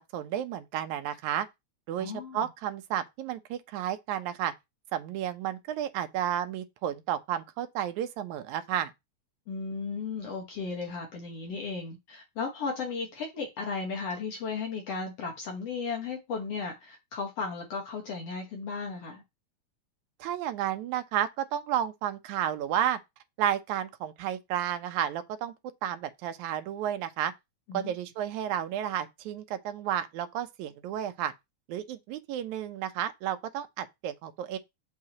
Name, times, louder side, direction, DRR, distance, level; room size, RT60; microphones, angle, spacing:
voice 1, 0.1-1.5 1.9-4.5 4.9-8.9 20.2-23.0 23.4-25.5 25.8-27.3 27.7-31.3 31.7-34.6, right 10 dB, 80° right, 2.1 m, -32 dB
voice 2, 2.0-2.5 9.5-19.2 27.7-27.9, left 4 dB, 60° left, 2.3 m, -35 dB
7.4 x 5.9 x 2.9 m
omnidirectional pair, 3.4 m